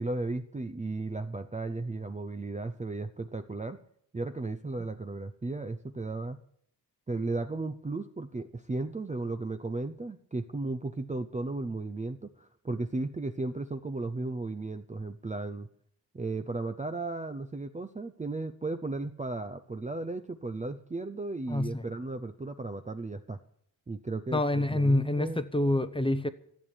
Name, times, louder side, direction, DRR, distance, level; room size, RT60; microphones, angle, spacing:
voice 1, 0.0-3.8 4.1-6.4 7.1-15.7 16.1-23.4 23.9-25.4, right 2 dB, 20° right, 8 dB, 0.6 m, -35 dB
voice 2, 21.5-21.8 24.3-26.3, left 1 dB, 15° left, 11 dB, 0.8 m, -27 dB
14.0 x 8.3 x 8.8 m, 0.67 s
wide cardioid pair, 135°, 42 cm